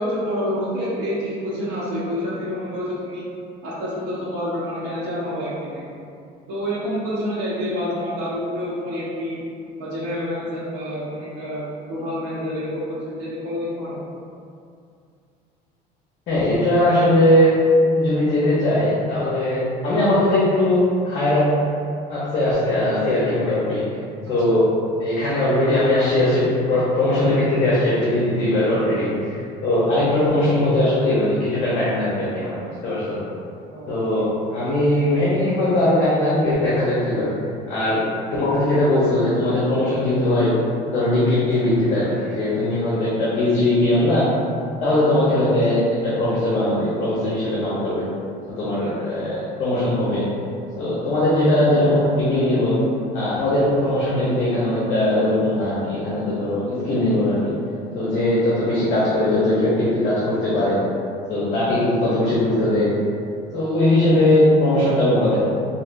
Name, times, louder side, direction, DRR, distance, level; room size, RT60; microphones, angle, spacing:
voice 1, 0.0-3.3 3.6-6.0 6.5-9.4 9.8-14.0 33.7-34.0 48.8-49.0, equal, 70° right, -8 dB, 0.7 m, -28 dB
voice 2, 16.3-17.5 18.0-21.5 22.1-23.8 24.3-24.6 25.0-32.6 32.8-33.2 33.9-37.3 37.7-38.0 38.3-40.5 40.9-44.2 44.8-48.0 48.6-50.2 50.8-52.8 53.1-57.5 57.9-60.8 61.3-62.9 63.5-65.4, left 1 dB, 45° left, -9 dB, 0.7 m, -20 dB
3.3 x 2.7 x 2.5 m, 2.4 s
cardioid pair, 170°, 17 cm